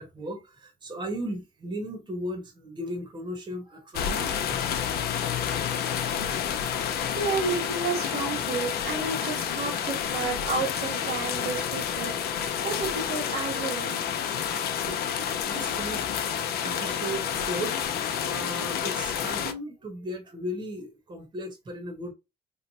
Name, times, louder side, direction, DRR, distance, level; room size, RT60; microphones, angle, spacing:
voice 1, 0.0-4.4 15.4-17.7 18.1-22.1, equal, 25° right, 1.0 m, -36 dB
sound 1, 3.9-19.5, left 8 dB, 65° left, 0.6 m, -29 dB
voice 2, 7.1-14.0 14.9-15.0, right 4 dB, 70° right, 1.5 m, -31 dB
3.1 x 2.0 x 4.1 m
cardioid pair, 110°, 17 cm